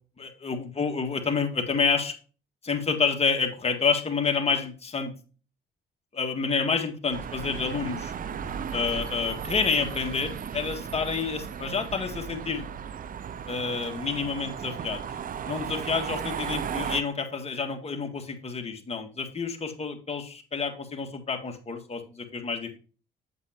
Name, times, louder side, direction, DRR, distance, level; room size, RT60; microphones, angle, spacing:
voice 1, 0.2-2.1 2.6-5.1 6.1-8.1 8.7-12.6 13.5-15.0 15.4-22.8, left 5 dB, 30° left, 4 dB, 1.8 m, -28 dB
sound 1, 7.1-17.0, right 7 dB, 45° right, 0.5 m, -35 dB
8.0 x 7.6 x 2.9 m, 0.36 s
cardioid pair, 90°, 20 cm